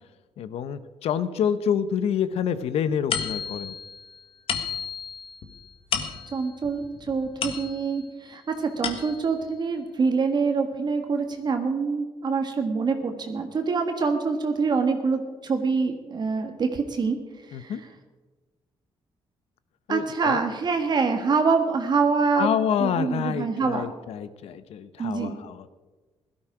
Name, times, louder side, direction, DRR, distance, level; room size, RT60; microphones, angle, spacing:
voice 1, 0.4-3.7 17.5-17.8 19.9-20.4 22.3-25.7, left 8 dB, 85° left, 13 dB, 0.9 m, -27 dB
sound 1, 3.1-8.1 8.5-9.4, left 7 dB, 65° left, 1.7 m, -33 dB
voice 2, 6.3-17.2 17.5-17.7 19.9-22.5 22.8-23.9 25.0-25.4, right 4 dB, 45° right, 5 dB, 1.6 m, -25 dB
16.5 x 13.0 x 5.0 m, 1.3 s
cardioid pair, 115°, 10 cm